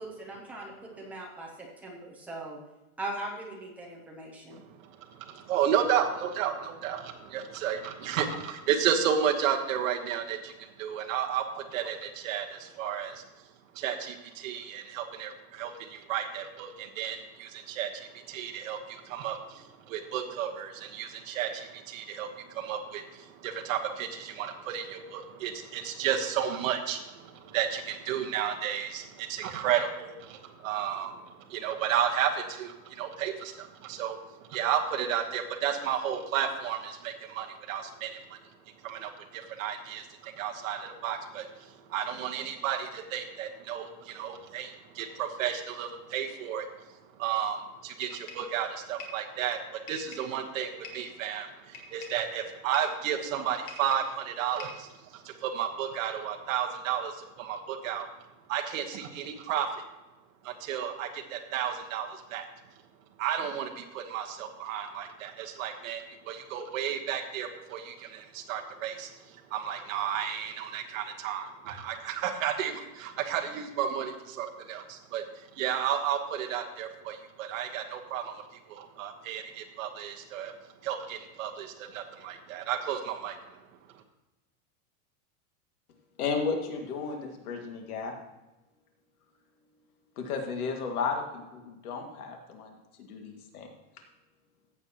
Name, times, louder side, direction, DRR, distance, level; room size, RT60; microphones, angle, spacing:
voice 1, 0.0-2.6 3.0-4.6, right 2 dB, 5° right, -3 dB, 0.5 m, -40 dB
voice 2, 4.5-13.2 13.7-38.4 38.8-58.1 58.5-59.8 60.4-62.5 63.2-78.4 78.7-80.5 80.8-83.6, right 9 dB, 60° right, 3 dB, 1.2 m, -33 dB
sound 1, 48.0-48.5 49.0-49.3 49.9-50.3 50.8-51.1 51.7-52.2 52.7-53.0 53.7-54.2 54.6-54.9, left 3 dB, 40° left, 1.8 m, -45 dB
voice 3, 86.2-88.1 90.2-93.7, left 5 dB, 75° left, 3 dB, 2.0 m, -34 dB
14.5 x 8.1 x 2.9 m, 1.0 s
supercardioid pair, 180°, 45 cm